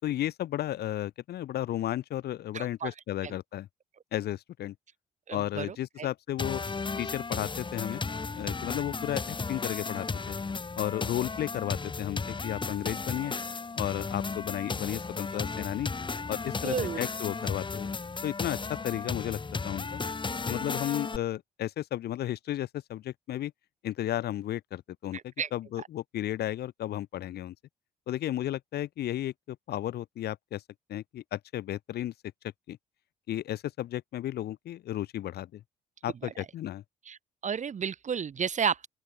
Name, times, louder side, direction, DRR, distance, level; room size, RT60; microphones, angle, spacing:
voice 1, 0.0-3.7 4.1-4.7 5.3-6.6 7.0-8.0 8.3-10.4 10.8-13.4 13.8-15.9 16.3-17.9 18.2-19.4 19.6-20.0 20.5-23.5 23.8-27.5 28.1-30.6 30.9-32.1 32.7-32.8 33.3-35.6 36.0-36.8, left 13 dB, 55° left, 7.2 m, -33 dB
voice 2, 2.5-2.9 3.2-3.3 5.3-6.1 16.6-17.0 25.1-25.5 36.2-36.3 37.1-38.9, right 7 dB, 40° right, 2.2 m, -32 dB
sound 1, 6.4-21.2, left 4 dB, 25° left, 2.1 m, -34 dB
open air
figure-of-eight pair, 45°, 19 cm